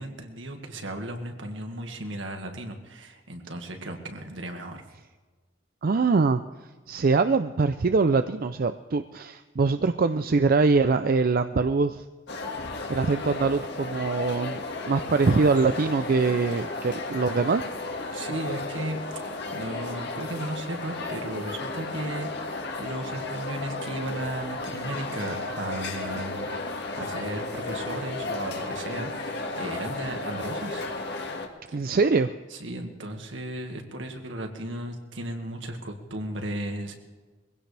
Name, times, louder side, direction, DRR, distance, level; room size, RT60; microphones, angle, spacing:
voice 1, 0.0-4.8 18.1-22.5 22.8-30.9 32.5-37.0, right 1 dB, 70° right, 4 dB, 1.9 m, -35 dB
voice 2, 5.8-6.4 6.9-12.0 12.9-17.6 31.7-32.3, right 4 dB, 50° right, 10 dB, 0.5 m, -23 dB
sound 1, 12.3-31.5, left 2 dB, 60° left, 1.9 m, -34 dB
22.0 x 16.5 x 3.4 m, 1.4 s
head